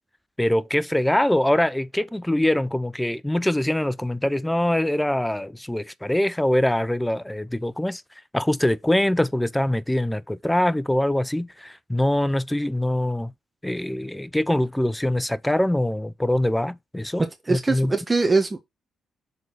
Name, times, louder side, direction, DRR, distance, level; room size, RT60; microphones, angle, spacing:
voice 1, 0.4-8.0 8.3-13.3 13.6-17.2 17.5-17.9, left 1 dB, 10° left, 0.6 m, -23 dB
voice 2, 17.4-18.6, right 3 dB, 25° right, 1.4 m, -22 dB
6.7 x 3.9 x 4.2 m
supercardioid pair, 60°, 0 cm